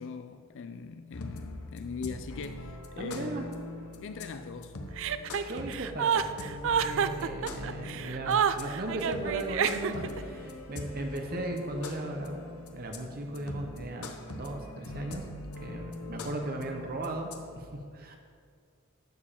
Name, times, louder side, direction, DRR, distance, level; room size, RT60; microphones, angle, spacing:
voice 1, 0.0-3.5 4.0-4.8 16.2-16.3, left 5 dB, 60° left, 0.4 m, -41 dB
sound 1, 1.1-17.6, left 2 dB, 80° left, 1.0 m, -42 dB
voice 2, 3.0-3.5 5.1-12.4 12.7-15.3 15.6-18.2, right 1 dB, 45° right, 0.9 m, -37 dB
Chuckle chortle, 5.0-10.2, right 7 dB, 60° right, 0.4 m, -29 dB
12.0 x 4.6 x 7.4 m
head